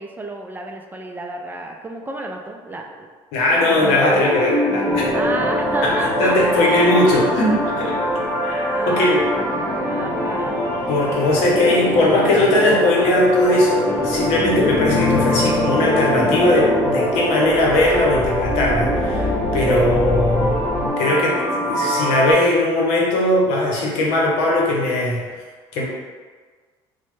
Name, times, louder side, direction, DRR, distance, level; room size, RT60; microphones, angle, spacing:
voice 1, 0.0-3.1 3.5-4.0 5.1-6.7 8.7-10.6 11.5-12.6, right 2 dB, 15° right, 1 dB, 0.3 m, -32 dB
voice 2, 3.3-5.1 5.8-5.9 6.2-7.9 8.4-9.2 10.9-20.6 21.0-21.4 21.6-25.2 25.7-25.8, left 1 dB, 80° left, -3 dB, 0.8 m, -19 dB
sound 1, 3.7-22.3, equal, 45° left, 1.2 m, -23 dB
sound 2, 4.9-20.9, left 2 dB, 10° left, 0.8 m, -29 dB
3.1 x 2.1 x 3.2 m, 1.5 s
supercardioid pair, 95°, 11 cm